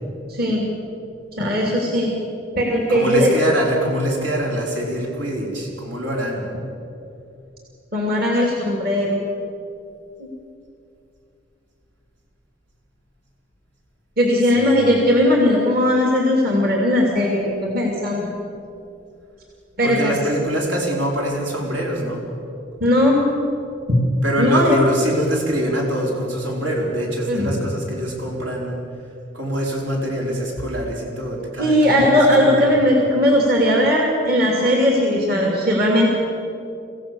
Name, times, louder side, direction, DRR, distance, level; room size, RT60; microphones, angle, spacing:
voice 1, 0.3-0.6 1.4-2.1 2.6-3.3 7.9-9.2 10.2-10.3 14.2-18.3 19.8-20.1 22.8-23.2 24.4-24.8 27.3-27.6 31.6-36.1, left 1 dB, 50° right, -1 dB, 2.8 m, -18 dB
voice 2, 2.9-6.4 14.4-14.9 19.8-22.2 24.2-28.8 29.3-32.7, equal, 80° right, -2 dB, 5.2 m, -24 dB
25.0 x 16.0 x 7.0 m, 2.6 s
head